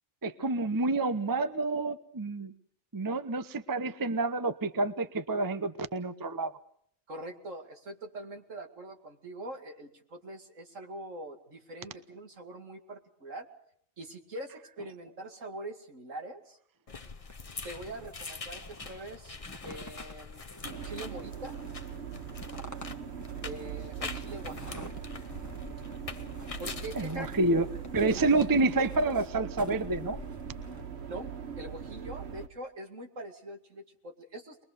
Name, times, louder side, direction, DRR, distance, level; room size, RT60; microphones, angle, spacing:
voice 1, 0.2-2.5 2.9-6.5 27.0-27.7 27.9-30.2, right 3 dB, 20° right, 12 dB, 0.8 m, -28 dB
voice 2, 7.1-13.5 14.0-16.6 17.6-20.4 20.8-21.6 23.4-24.9 26.6-27.3 28.2-28.3 31.1-34.6, right 1 dB, 70° right, 5 dB, 2.8 m, -43 dB
sound 1, 16.9-28.4, left 4 dB, 30° left, 1.0 m, -44 dB
sound 2, 17.2-30.9, left 1 dB, 15° left, 1.5 m, -49 dB
sound 3, 20.6-32.5, right 8 dB, 55° right, 1.4 m, -41 dB
22.5 x 22.0 x 6.7 m, 0.65 s
omnidirectional pair, 1.4 m